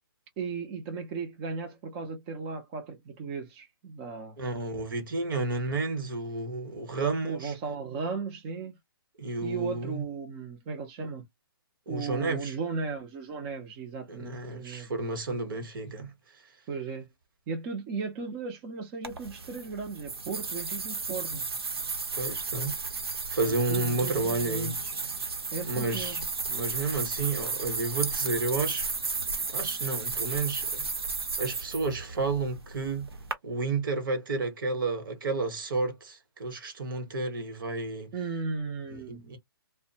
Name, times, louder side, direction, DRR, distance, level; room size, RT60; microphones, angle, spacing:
voice 1, 0.4-4.4 7.2-8.7 9.4-11.2 11.9-14.9 16.7-17.1 17.5-21.4 23.4-24.9 25.5-26.2 38.1-39.4, right 4 dB, 20° right, 0.5 m, -36 dB
voice 2, 4.4-7.5 9.2-10.0 11.9-12.6 14.1-16.1 22.1-22.8 23.3-24.8 25.6-26.2 26.5-28.9 29.5-30.9 31.4-33.1 33.4-38.1 38.9-39.4, right 3 dB, 60° right, 1.1 m, -31 dB
sound 1, 19.0-33.3, right 4 dB, 85° right, 0.9 m, -34 dB
2.5 x 2.1 x 2.7 m
hypercardioid pair, 155°, 13 cm